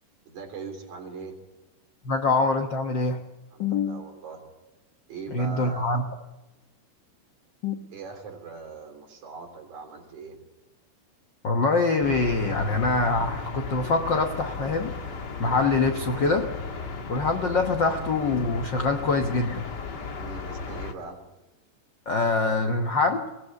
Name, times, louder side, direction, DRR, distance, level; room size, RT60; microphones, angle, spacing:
voice 1, 0.3-1.4 3.5-4.4 5.1-6.0 7.9-10.4 20.2-21.2, right 4 dB, 55° right, 2 dB, 4.7 m, -40 dB
voice 2, 2.0-3.2 3.6-4.0 5.3-6.0 7.6-7.7 11.4-14.9 15.4-16.5 17.1-19.7 22.1-23.2, left 3 dB, 80° left, 5 dB, 1.0 m, -24 dB
sound 1, 12.0-20.9, left 4 dB, 40° left, 1.6 m, -35 dB
22.5 x 18.0 x 8.4 m, 1.0 s
omnidirectional pair, 4.0 m